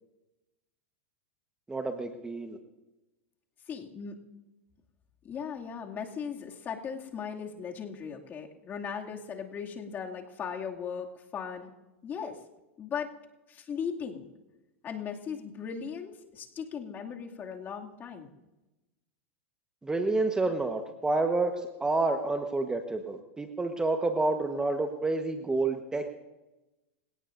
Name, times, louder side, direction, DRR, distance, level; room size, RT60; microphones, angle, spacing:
voice 1, 1.7-2.6 19.8-26.2, right 3 dB, 10° right, 5 dB, 1.3 m, -29 dB
voice 2, 3.7-4.2 5.2-11.7 12.0-12.4 12.8-13.1 13.5-14.3 14.8-18.3, left 6 dB, 30° left, 1 dB, 2.4 m, -38 dB
27.0 x 17.5 x 2.6 m, 1.0 s
hypercardioid pair, 110°, 7 cm